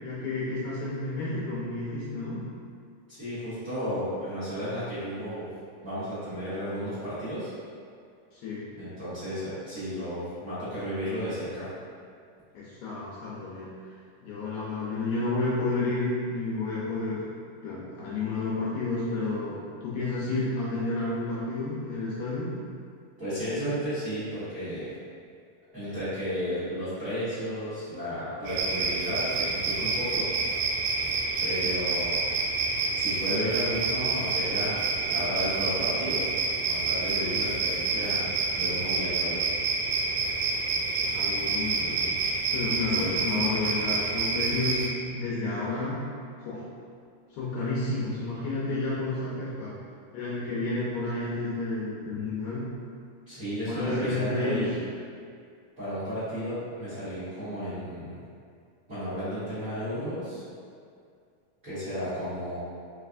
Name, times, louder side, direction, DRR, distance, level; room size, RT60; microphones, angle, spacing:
voice 1, 0.0-2.4 8.3-8.7 12.5-13.7 14.2-17.2 17.6-22.5 41.0-42.2 42.5-44.9 45.1-46.0 46.4-46.6 47.3-49.8 50.1-52.7 53.6-54.7, left 3 dB, 75° left, -8 dB, 1.9 m, -31 dB
voice 2, 3.1-5.5 5.8-7.5 8.8-11.7 23.2-24.9 25.7-30.3 31.4-32.3 32.9-34.8 35.1-36.2 36.6-38.3 38.5-39.4 42.9-43.1 53.3-54.8 55.8-58.2 58.9-60.4 61.6-62.6, equal, 40° right, -16 dB, 1.2 m, -33 dB
sound 1, 28.5-44.9, right 4 dB, 85° right, 2.1 m, -28 dB
4.7 x 3.3 x 2.5 m, 2.3 s
omnidirectional pair, 3.7 m